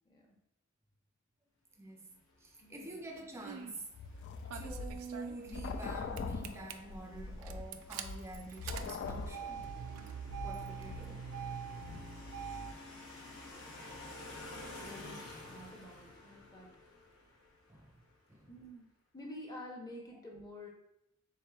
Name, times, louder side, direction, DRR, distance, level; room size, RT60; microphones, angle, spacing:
voice 1, 0.1-0.4 2.6-3.0 14.8-16.8 18.5-18.8 19.1-20.7, left 1 dB, 20° left, 0.7 m, -49 dB
voice 2, 1.8-2.1 2.4-3.9 4.5-9.6 10.0-10.1 10.4-11.2 17.7-17.9 18.3-18.5, right 2 dB, 15° right, 0.4 m, -47 dB
sound 1, 2.3-18.4, left 2 dB, 85° left, 0.9 m, -53 dB
Engine starting, 3.2-3.7 4.5-5.9 6.2-6.7 7.4-12.7, right 7 dB, 85° right, 0.3 m, -44 dB
sound 2, 3.9-11.4 11.8-12.0, left 3 dB, 55° left, 0.3 m, -43 dB
4.5 x 3.6 x 2.3 m
head